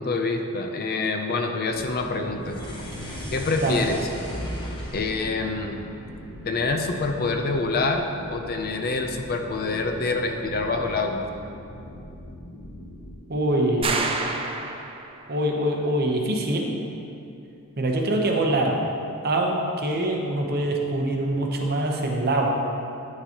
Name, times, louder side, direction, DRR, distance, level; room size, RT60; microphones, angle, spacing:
voice 1, 0.0-2.6 3.3-4.1 4.9-5.8 6.4-11.2, left 3 dB, 45° left, 4 dB, 0.5 m, -26 dB
sound 1, 1.7-13.1, left 1 dB, 60° left, 0.9 m, -42 dB
sound 2, 2.4-6.8, equal, 20° left, 0.9 m, -36 dB
voice 2, 13.3-14.0 15.3-16.7 17.8-18.8 19.2-22.5, right 1 dB, 45° right, 1 dB, 0.8 m, -24 dB
sound 3, 13.8-15.3, right 3 dB, 25° right, 0.4 m, -28 dB
9.5 x 6.7 x 2.9 m, 2.6 s
head